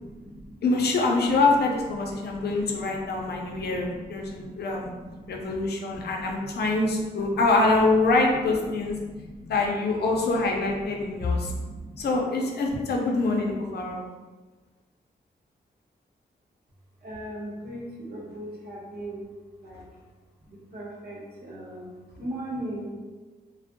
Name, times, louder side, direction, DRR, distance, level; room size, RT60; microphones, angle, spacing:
voice 1, 0.0-0.5 1.2-1.3 1.9-5.6 5.9-7.5 7.9-8.0 8.6-9.7 10.1-12.2 12.6-13.0 17.0-19.3 19.6-19.8 20.4-22.9, right 1 dB, 70° right, -5 dB, 0.8 m, -41 dB
voice 2, 0.6-4.9 5.3-9.0 9.5-11.5 12.0-14.0, left 3 dB, 80° left, 0 dB, 0.4 m, -25 dB
2.5 x 2.0 x 2.5 m, 1.3 s
wide cardioid pair, 115°, 17 cm